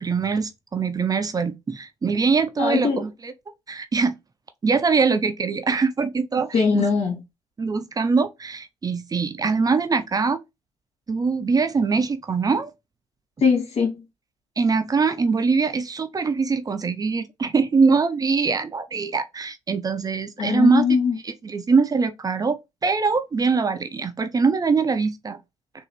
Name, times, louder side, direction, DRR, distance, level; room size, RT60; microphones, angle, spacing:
voice 1, 0.0-3.3 3.7-4.1 4.6-6.9 7.6-10.4 11.1-12.7 14.6-20.9 21.2-25.4, right 4 dB, 30° right, 0.7 m, -23 dB
voice 2, 2.6-3.0 6.5-7.2 13.4-14.0 20.4-21.2, left 5 dB, 60° left, 2.4 m, -21 dB
3.9 x 2.7 x 4.3 m
hypercardioid pair, 55°, 12 cm